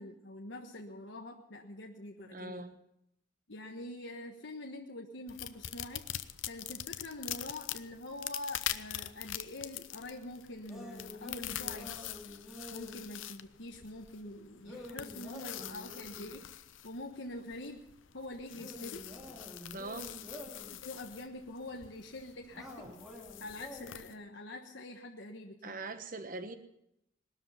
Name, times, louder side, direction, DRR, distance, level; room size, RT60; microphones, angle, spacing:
voice 1, 0.0-2.6 3.5-6.1 6.5-12.2 12.7-16.4 16.8-17.8 18.1-19.0 20.8-22.9 23.4-25.8, left 1 dB, 70° left, 1 dB, 1.4 m, -45 dB
voice 2, 2.3-2.8 19.7-20.1 25.6-26.6, right 2 dB, 45° right, 9 dB, 1.1 m, -42 dB
sound 1, 5.3-24.1, left 12 dB, 85° left, 0.8 m, -44 dB
sound 2, 10.7-13.0 14.6-16.3 18.5-20.8 22.5-24.1, left 1 dB, ahead, 3.3 m, -48 dB
19.5 x 13.0 x 5.7 m, 0.80 s
head